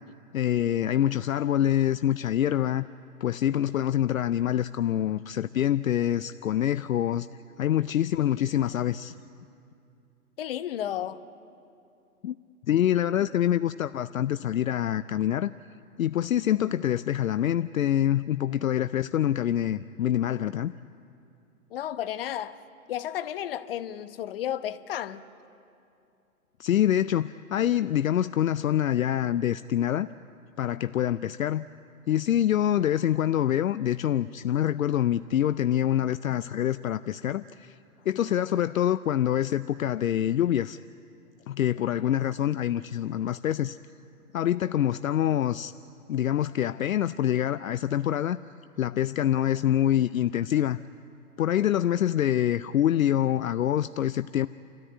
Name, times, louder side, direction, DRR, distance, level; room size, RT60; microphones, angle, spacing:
voice 1, 0.3-2.9 3.2-7.3 7.6-9.1 12.2-12.3 12.7-15.5 16.0-20.7 26.6-30.1 30.6-31.7 32.1-37.7 38.1-40.8 41.5-43.8 44.3-45.7 46.1-48.4 48.8-50.8 51.4-54.5, left 11 dB, 65° left, 0.6 m, -25 dB
voice 2, 10.4-11.2 21.7-22.6 22.9-25.2, left 11 dB, 40° left, 1.0 m, -32 dB
29.0 x 13.5 x 9.4 m
hypercardioid pair, 140°, 45 cm